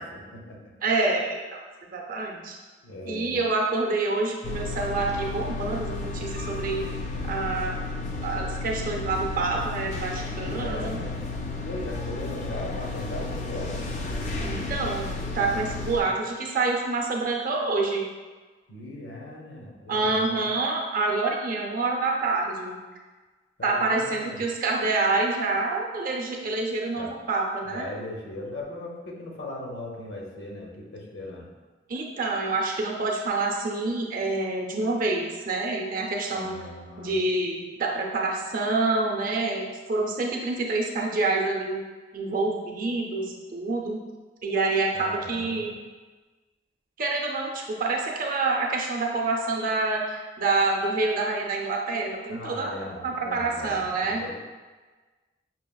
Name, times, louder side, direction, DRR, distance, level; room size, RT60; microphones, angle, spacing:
voice 1, 0.0-0.7 2.8-3.4 10.3-11.3 11.6-13.8 18.7-20.5 23.6-24.5 27.0-27.1 27.7-31.5 36.3-37.2 44.9-45.7 52.3-54.4, left 1 dB, 70° left, -1 dB, 0.8 m, -38 dB
voice 2, 0.8-1.6 1.9-2.6 3.1-6.8 7.3-7.8 8.2-11.0 14.4-18.0 19.9-22.8 23.6-27.9 31.9-36.5 37.0-41.8 42.1-44.0 44.4-45.8 47.0-52.7 53.0-54.2, right 3 dB, 50° right, 0 dB, 0.5 m, -27 dB
sound 1, 4.4-16.0, left 3 dB, 40° left, 0.4 m, -33 dB
5.6 x 2.8 x 2.3 m, 1.3 s
head